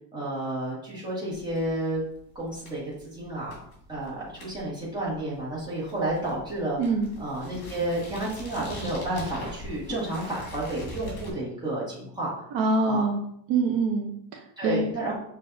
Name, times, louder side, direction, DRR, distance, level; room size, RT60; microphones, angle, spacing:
voice 1, 0.1-2.0 2.3-2.8 3.1-3.6 3.9-6.8 7.2-12.3 12.8-13.1 14.6-15.2, right 1 dB, 10° right, -7 dB, 1.4 m, -31 dB
sound 1, 1.3-11.3, left 1 dB, 50° left, 1.8 m, -43 dB
voice 2, 6.8-7.1 12.5-13.2 13.5-14.8, right 3 dB, 65° right, 2 dB, 0.7 m, -25 dB
6.6 x 2.7 x 2.6 m, 0.70 s
cardioid pair, 175°, 42 cm